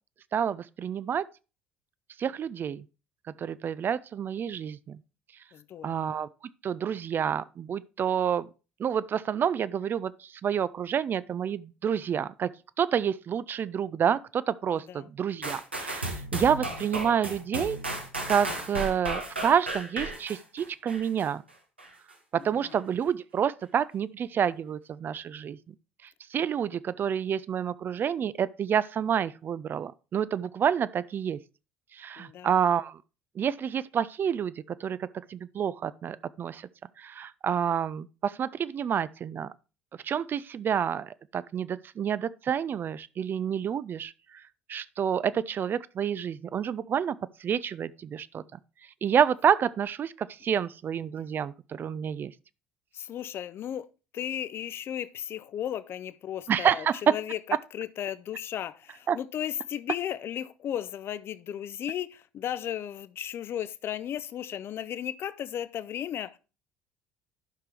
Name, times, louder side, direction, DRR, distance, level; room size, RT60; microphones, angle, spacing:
voice 1, 0.3-1.2 2.2-2.8 3.4-5.0 5.8-6.3 6.6-8.5 8.8-12.5 12.8-17.8 18.3-21.4 22.4-25.7 26.3-31.4 31.9-33.0 33.4-36.7 37.0-39.5 40.0-44.1 44.7-48.6 49.0-52.3 56.5-57.0 59.1-59.2, right 8 dB, 35° right, 0.4 m, -29 dB
voice 2, 5.5-6.1 14.8-15.1 22.5-22.8 32.2-32.5 52.9-53.9 54.1-57.4 57.7-66.4, left 10 dB, 45° left, 0.6 m, -35 dB
sound 1, 15.4-21.3 21.8-21.9, right 2 dB, 90° right, 1.2 m, -34 dB
11.5 x 6.0 x 3.3 m
figure-of-eight pair, 55°, 6 cm